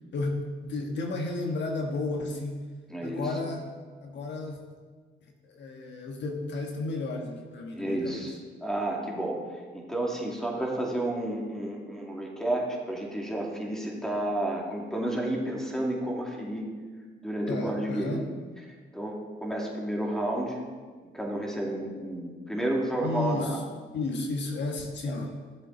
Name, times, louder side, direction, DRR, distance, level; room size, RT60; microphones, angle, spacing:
voice 1, 0.1-2.7 3.0-4.6 5.4-8.3 17.5-18.3 23.0-23.6 23.9-25.4, left 2 dB, 65° left, 2 dB, 1.4 m, -33 dB
voice 2, 2.9-3.3 7.7-16.7 17.2-18.2 18.9-20.6 21.1-23.6, right 1 dB, 5° left, -1 dB, 2.3 m, -31 dB
14.5 x 7.3 x 3.9 m, 1.5 s
cardioid pair, 90°, 20 cm